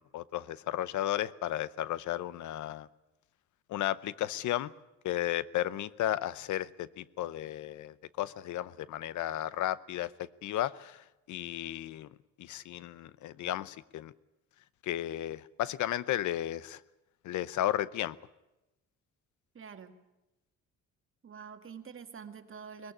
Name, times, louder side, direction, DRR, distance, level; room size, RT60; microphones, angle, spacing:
voice 1, 0.0-2.9 3.7-4.7 5.0-12.1 12.4-14.1 14.8-16.8 17.2-18.2, left 13 dB, 75° left, 19 dB, 0.8 m, -34 dB
voice 2, 19.5-20.0 21.2-22.9, right 6 dB, 45° right, 8 dB, 1.9 m, -46 dB
20.5 x 15.0 x 10.0 m, 0.99 s
cardioid pair, 90°, 30 cm